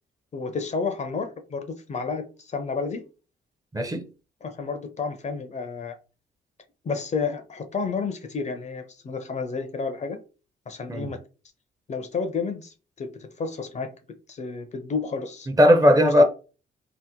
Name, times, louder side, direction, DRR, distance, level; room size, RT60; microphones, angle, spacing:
voice 1, 0.3-3.0 4.4-6.0 6.8-10.2 10.7-11.2 11.9-13.9 14.3-15.5 16.0-16.2, left 4 dB, 35° left, 0.5 m, -31 dB
voice 2, 3.7-4.0 10.9-11.1 15.5-16.2, equal, 20° right, 0.5 m, -17 dB
2.8 x 2.1 x 3.6 m
cardioid pair, 90°, 20 cm